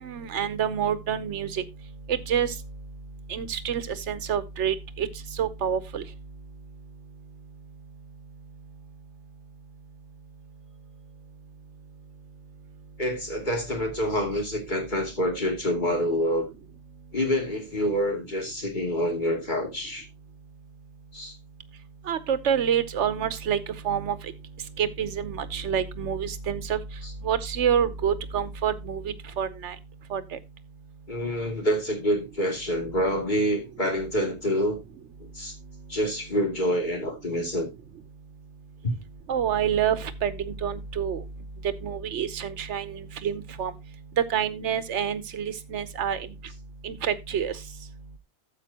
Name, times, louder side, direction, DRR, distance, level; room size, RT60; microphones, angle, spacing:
voice 1, 0.0-1.6 2.1-2.5 3.3-5.1 5.3-6.0 22.1-23.6 23.8-24.2 24.8-26.8 27.2-29.7 30.1-30.4 39.3-41.2 41.8-43.7 44.3-46.2 46.8-47.6, right 8 dB, 80° right, 1.2 m, -27 dB
voice 2, 13.0-16.5 17.1-20.0 21.1-21.4 31.1-34.8 35.3-35.5 35.9-37.7 38.8-39.0, equal, 40° left, 2.9 m, -27 dB
13.0 x 7.9 x 2.8 m
omnidirectional pair, 1.2 m